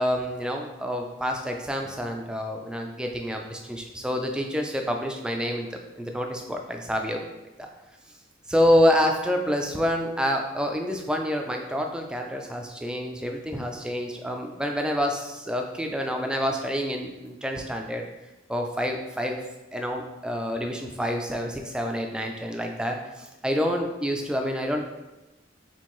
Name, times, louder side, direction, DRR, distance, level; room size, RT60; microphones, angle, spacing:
voice 1, 0.0-7.3 7.6-7.7 8.5-18.0 18.5-19.4 19.7-24.9, equal, 5° right, 2 dB, 0.3 m, -27 dB
4.4 x 3.8 x 3.0 m, 1.0 s
head